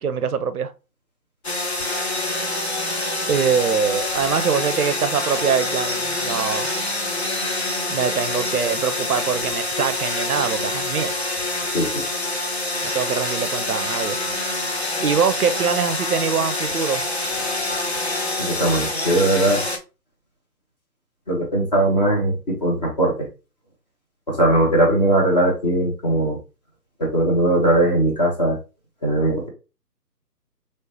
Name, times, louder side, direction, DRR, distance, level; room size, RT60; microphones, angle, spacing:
voice 1, 0.0-0.7 3.3-6.8 7.9-11.2 12.8-14.2 15.0-17.0, right 6 dB, 65° right, 0.5 m, -23 dB
sound 1, 1.4-19.8, left 2 dB, 45° left, 0.5 m, -26 dB
voice 2, 18.4-19.6 21.3-23.1 24.3-26.4 27.0-28.6 29.0-29.5, right 1 dB, 25° left, 1.0 m, -19 dB
3.2 x 3.1 x 2.7 m
figure-of-eight pair, 150°, 50 cm